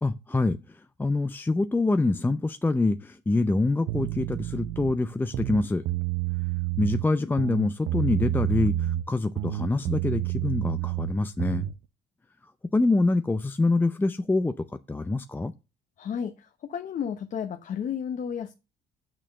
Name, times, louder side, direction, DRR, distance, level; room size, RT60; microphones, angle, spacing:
voice 1, 0.0-5.8 6.8-11.7 12.7-15.5, left 2 dB, 10° left, 0.6 m, -25 dB
sound 1, 3.9-4.9 5.3-7.1 7.4-9.1 9.4-11.7, right 14 dB, 80° right, 0.6 m, -29 dB
voice 2, 16.0-18.5, left 8 dB, 50° left, 1.0 m, -32 dB
6.6 x 6.3 x 6.6 m
cardioid pair, 110°, 17 cm